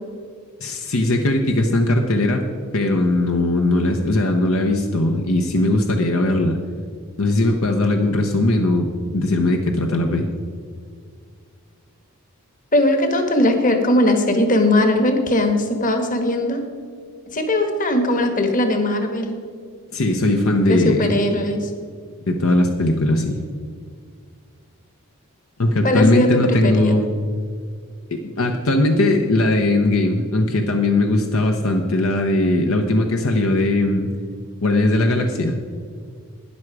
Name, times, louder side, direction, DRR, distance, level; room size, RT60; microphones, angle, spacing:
voice 1, 0.6-2.4 2.7-6.6 7.2-10.3 19.9-21.1 22.3-23.4 25.6-27.1 28.1-34.1 34.6-35.6, left 1 dB, 65° left, 4 dB, 0.9 m, -19 dB
voice 2, 12.7-16.7 17.3-19.4 20.7-21.7 25.8-27.0, left 1 dB, 35° left, 6 dB, 1.4 m, -19 dB
12.5 x 9.9 x 4.8 m, 2.1 s
head